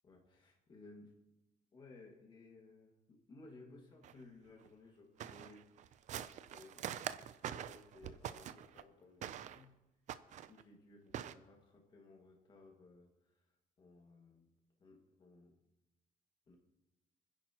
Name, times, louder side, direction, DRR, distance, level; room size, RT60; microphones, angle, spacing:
voice 1, 0.0-1.1 1.7-6.1 6.5-9.7 10.4-13.4 13.8-14.5 14.8-15.6 16.5-16.6, left 3 dB, 30° left, 0 dB, 1.9 m, -59 dB
sound 1, 4.0-4.1 4.6-4.7 5.2-8.8 9.2-9.6 10.1-10.6 11.1-11.3, right 10 dB, 55° right, 0.5 m, -44 dB
25.0 x 10.5 x 2.9 m, 0.97 s
cardioid pair, 170°, 15 cm